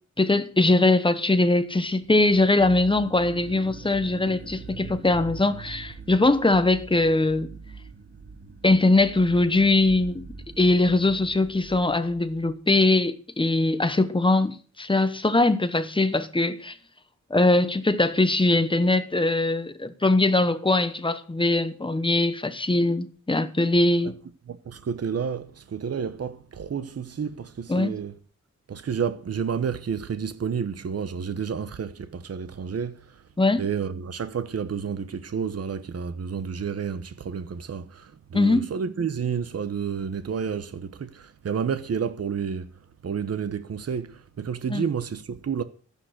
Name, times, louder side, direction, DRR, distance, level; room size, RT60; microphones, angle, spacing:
voice 1, 0.2-7.5 8.6-10.3 10.6-16.8 17.3-24.2 27.7-27.9 33.4-33.6 38.3-38.7 44.7-44.8, left 2 dB, 15° left, 1.0 m, -21 dB
sound 1, 1.9-12.6, right 4 dB, 35° right, 1.8 m, -43 dB
voice 2, 24.5-28.1 28.7-33.2 33.6-42.7 43.0-45.6, right 7 dB, 55° right, 1.0 m, -30 dB
13.0 x 10.5 x 6.5 m
wide cardioid pair, 175°, 30 cm